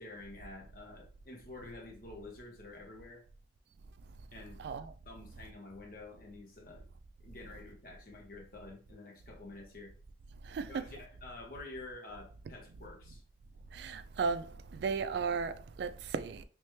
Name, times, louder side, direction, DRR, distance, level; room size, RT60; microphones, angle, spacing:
voice 1, 0.0-3.2 4.3-4.7 5.1-6.9 7.2-9.9 10.7-13.2, left 2 dB, 50° left, 1.0 m, -49 dB
voice 2, 4.6-4.9 10.4-10.8 13.7-16.4, right 5 dB, 65° right, 0.3 m, -35 dB
3.3 x 3.1 x 3.1 m
head